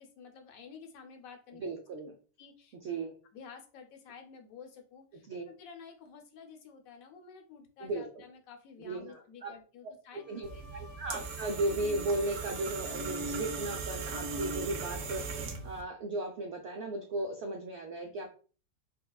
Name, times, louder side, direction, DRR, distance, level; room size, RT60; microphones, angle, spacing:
voice 1, 0.0-1.6 2.4-2.8 3.3-10.8 18.1-18.3, left 6 dB, 65° left, 4 dB, 1.0 m, -51 dB
voice 2, 1.5-2.1 2.8-3.1 5.3-5.4 7.8-8.2 8.8-9.5 10.3-10.5 11.0-18.3, right 2 dB, 85° right, 3 dB, 0.6 m, -36 dB
Bowed string instrument, 10.1-16.0, left 8 dB, 85° left, 1.7 m, -53 dB
sound 1, 10.4-15.8, right 4 dB, 70° right, 1.0 m, -38 dB
5.2 x 2.2 x 2.3 m, 0.38 s
omnidirectional pair, 1.7 m